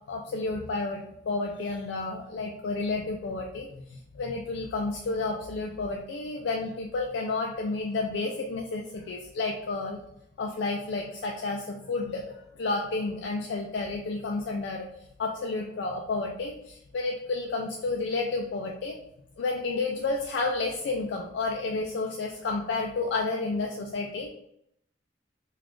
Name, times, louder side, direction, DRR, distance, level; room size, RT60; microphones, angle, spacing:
voice 1, 0.1-10.0 10.4-14.9 15.2-19.0 19.4-24.3, left 3 dB, 60° left, 0 dB, 0.3 m, -31 dB
3.9 x 2.3 x 3.0 m, 0.79 s
head